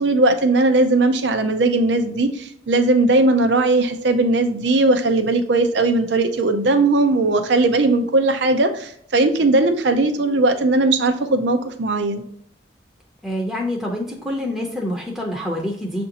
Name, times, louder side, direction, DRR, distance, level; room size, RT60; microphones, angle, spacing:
voice 1, 0.0-12.2, right 2 dB, 85° right, 7 dB, 0.6 m, -18 dB
voice 2, 13.2-16.1, left 1 dB, ahead, -2 dB, 0.6 m, -26 dB
6.8 x 2.6 x 2.8 m, 0.65 s
head